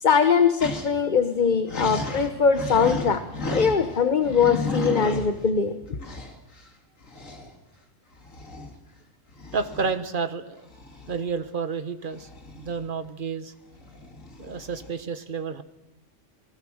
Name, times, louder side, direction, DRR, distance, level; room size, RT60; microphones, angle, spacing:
voice 1, 0.0-3.2 3.5-5.7, left 6 dB, 40° left, 9 dB, 1.1 m, -21 dB
sound 1, 0.6-0.9 1.2-1.3 1.7-4.0 4.2-5.5 6.0-6.3 7.0-7.5 8.2-8.7 9.3-9.9 10.7-11.3 12.1-13.1 13.7-14.9, left 2 dB, 85° left, 2.9 m, -33 dB
voice 2, 9.5-10.7 11.1-12.3 12.6-13.5 14.4-15.6, right 5 dB, 45° right, 10 dB, 1.4 m, -30 dB
27.0 x 20.0 x 6.4 m, 0.95 s
omnidirectional pair, 1.3 m